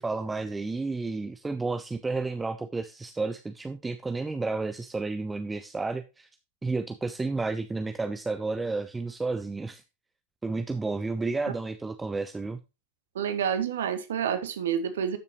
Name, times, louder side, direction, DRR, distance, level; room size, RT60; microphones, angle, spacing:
voice 1, 0.0-6.3 6.6-9.8 10.4-12.6, right 3 dB, 10° right, 0.6 m, -31 dB
voice 2, 13.1-15.2, right 8 dB, 60° right, 1.5 m, -28 dB
12.0 x 6.9 x 3.0 m
figure-of-eight pair, 90°, 0 cm